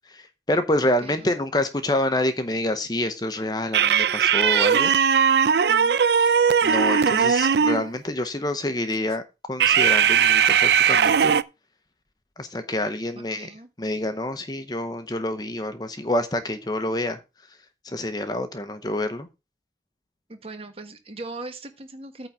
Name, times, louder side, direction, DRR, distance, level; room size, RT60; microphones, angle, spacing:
voice 1, 0.1-4.9 6.2-9.2 9.5-11.4 12.4-13.5 13.8-17.2 17.8-19.3, left 1 dB, 20° left, 10 dB, 0.8 m, -27 dB
voice 2, 1.0-1.3 5.7-6.0 13.1-13.7 20.3-22.3, right 2 dB, 35° right, 7 dB, 1.4 m, -39 dB
sound 1, 3.7-7.9 9.6-11.4, right 7 dB, 70° right, 0.5 m, -19 dB
9.0 x 3.9 x 7.1 m, 0.27 s
head